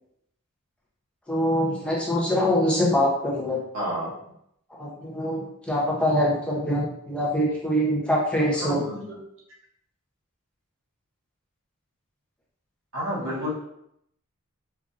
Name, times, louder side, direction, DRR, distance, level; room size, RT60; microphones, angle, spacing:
voice 1, 1.3-3.6 4.7-8.8 13.2-13.3, equal, 5° left, -5 dB, 0.7 m, -24 dB
voice 2, 3.7-4.1 8.6-9.2 12.9-13.6, equal, 65° right, -6 dB, 1.2 m, -30 dB
4.6 x 2.5 x 2.5 m, 0.75 s
head